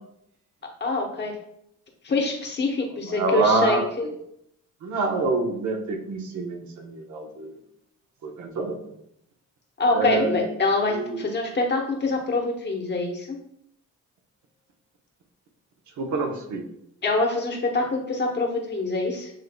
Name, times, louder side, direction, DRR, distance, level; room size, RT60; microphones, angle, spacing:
voice 1, 0.8-1.4 2.0-4.2 9.8-13.4 17.0-19.3, left 2 dB, 35° left, 1 dB, 1.1 m, -25 dB
voice 2, 3.1-4.1 4.8-7.6 8.2-9.0 9.9-10.4 10.9-11.3 16.0-16.6, right 3 dB, 70° right, 2 dB, 0.9 m, -26 dB
7.4 x 3.1 x 2.2 m, 0.76 s
cardioid pair, 90°, 30 cm